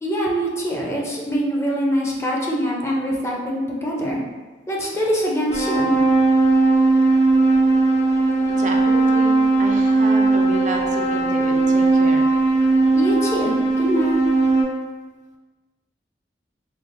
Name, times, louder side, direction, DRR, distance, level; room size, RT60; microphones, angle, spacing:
voice 1, 0.0-4.2 4.7-5.9 12.9-14.2, equal, 15° left, -3 dB, 0.5 m, -23 dB
sound 1, 5.5-14.6, right 3 dB, 75° left, 1.2 m, -18 dB
voice 2, 8.6-12.3, right 2 dB, 45° right, 2 dB, 0.4 m, -31 dB
3.8 x 3.2 x 2.5 m, 1.3 s
head